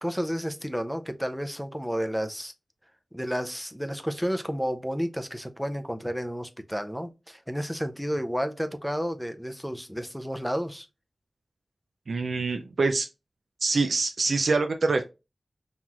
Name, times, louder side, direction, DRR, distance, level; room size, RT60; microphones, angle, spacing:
voice 1, 0.0-2.5 3.1-10.9, equal, ahead, 0.5 m, -31 dB
voice 2, 12.1-13.1 13.6-15.0, right 3 dB, 70° right, 0.4 m, -25 dB
5.5 x 3.0 x 2.3 m
wide cardioid pair, 105°, 0 cm